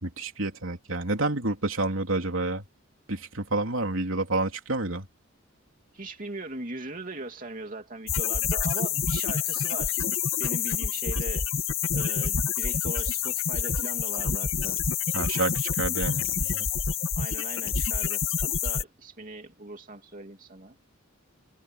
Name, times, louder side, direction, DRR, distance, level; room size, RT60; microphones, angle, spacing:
voice 1, 0.0-2.6 3.1-5.1 15.1-16.7, right 2 dB, 65° right, 3.6 m, -29 dB
voice 2, 5.9-10.0 10.4-11.5 11.9-14.8 17.1-20.8, right 2 dB, 40° right, 2.8 m, -39 dB
sound 1, 8.1-18.8, left 7 dB, 65° left, 2.1 m, -27 dB
head